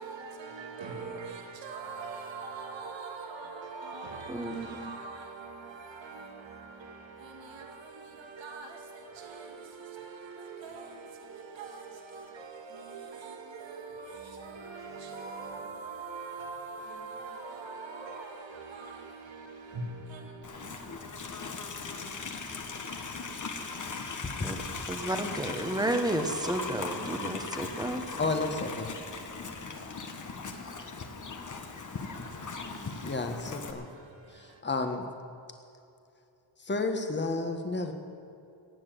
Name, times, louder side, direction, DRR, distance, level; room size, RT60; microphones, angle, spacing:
voice 1, 0.0-21.0 21.4-21.5 29.4-29.9 30.5-30.8 32.3-33.1 34.5-34.6, right 4 dB, 65° right, 2.2 m, -43 dB
voice 2, 4.3-4.9 24.4-24.6 24.9-28.0, right 1 dB, 10° right, 1.3 m, -32 dB
Livestock farm animals working animals, 20.4-33.7, left 4 dB, 40° left, 1.4 m, -39 dB
voice 3, 28.2-28.9 33.0-33.9 34.6-35.0 36.7-37.9, left 3 dB, 20° left, 1.4 m, -31 dB
17.0 x 7.4 x 9.2 m
cardioid pair, 95°, 48 cm